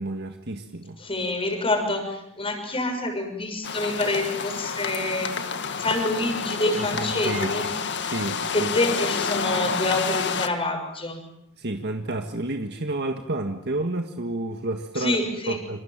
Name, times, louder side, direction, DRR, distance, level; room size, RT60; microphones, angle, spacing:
voice 1, 0.0-1.0 6.8-7.7 8.0-8.7 11.6-15.2 15.5-15.8, right 2 dB, 50° right, 5 dB, 1.7 m, -30 dB
voice 2, 1.0-5.3 5.8-7.7 8.5-11.2 15.0-15.6, left 2 dB, 25° left, 5 dB, 6.3 m, -27 dB
sound 1, 3.6-10.5, left 5 dB, 55° left, 1.9 m, -29 dB
27.5 x 26.5 x 7.5 m, 0.78 s
head